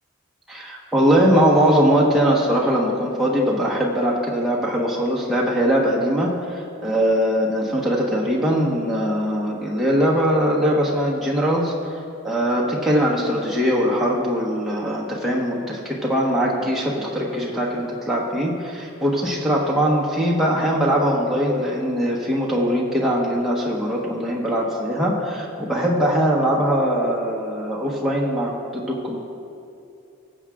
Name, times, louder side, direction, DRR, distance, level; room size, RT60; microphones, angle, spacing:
voice 1, 0.5-11.7 12.2-29.2, equal, ahead, -5 dB, 1.1 m, -21 dB
21.0 x 7.2 x 2.5 m, 2.6 s
head